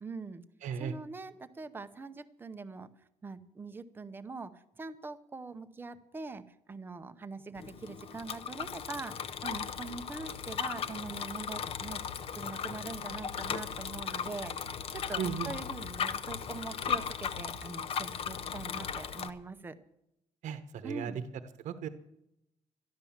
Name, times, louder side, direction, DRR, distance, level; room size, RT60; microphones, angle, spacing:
voice 1, 0.0-0.4 0.8-2.9 3.2-6.4 6.7-12.0 12.3-19.8 20.8-21.2, right 3 dB, 15° right, 10 dB, 0.7 m, -43 dB
voice 2, 0.6-1.0 15.2-15.5 20.4-21.1 21.6-21.9, right 8 dB, 70° right, 11 dB, 1.0 m, -36 dB
Bicycle, 7.5-19.3, left 7 dB, 45° left, 0.8 m, -37 dB
13.0 x 11.5 x 7.2 m, 0.82 s
cardioid pair, 170°, 13 cm